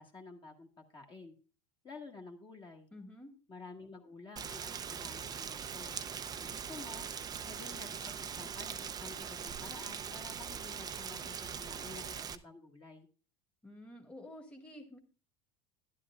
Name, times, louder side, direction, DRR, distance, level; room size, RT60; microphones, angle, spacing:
voice 1, 0.0-1.3 1.8-2.9 3.5-6.0 6.4-7.1 7.5-13.1, left 3 dB, 30° left, 2 dB, 1.7 m, -51 dB
voice 2, 2.9-3.3 13.6-15.0, left 1 dB, 5° left, 1 dB, 1.7 m, -50 dB
Rain, 4.4-12.4, right 7 dB, 20° right, 0.6 m, -41 dB
12.5 x 11.0 x 2.4 m, 0.36 s
supercardioid pair, 120°, 18 cm